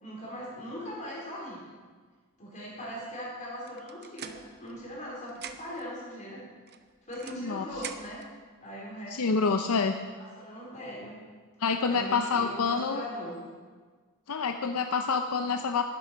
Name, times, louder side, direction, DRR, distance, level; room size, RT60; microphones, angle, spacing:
voice 1, 0.0-1.6 2.4-6.4 7.1-8.2 8.6-9.5 10.2-11.1 11.8-13.4, equal, 35° left, -5 dB, 4.2 m, -40 dB
sound 1, 3.7-5.0 5.3-5.9 6.7-8.3, right 8 dB, 50° right, 0.7 m, -44 dB
voice 2, 7.3-7.7 9.1-9.9 11.6-13.0 14.3-15.8, left 5 dB, 75° left, 6 dB, 0.6 m, -27 dB
11.0 x 9.6 x 5.9 m, 1.5 s
head